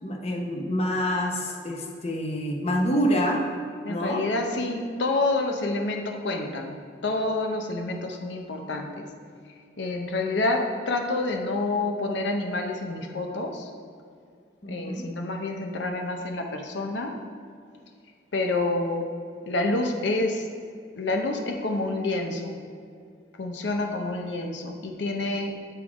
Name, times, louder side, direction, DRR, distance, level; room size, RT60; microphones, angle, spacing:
voice 1, 0.0-3.4 3.9-4.2 14.6-15.1, equal, 35° left, 1 dB, 0.7 m, -27 dB
voice 2, 3.8-6.8 7.0-9.0 9.8-13.7 14.7-17.2 18.3-19.1 19.5-20.5 21.0-22.6 23.4-25.7, left 2 dB, 75° left, 3 dB, 0.6 m, -28 dB
8.0 x 3.6 x 4.9 m, 2.3 s
head